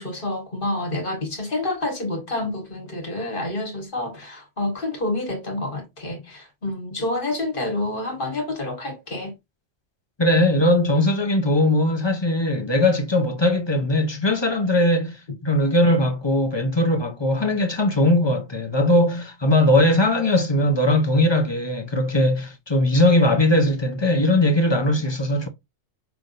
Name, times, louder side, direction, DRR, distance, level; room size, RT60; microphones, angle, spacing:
voice 1, 0.0-9.3, left 2 dB, 50° left, 1.8 m, -28 dB
voice 2, 10.2-25.5, left 1 dB, 25° left, 0.8 m, -20 dB
5.7 x 3.5 x 2.6 m
omnidirectional pair, 1.2 m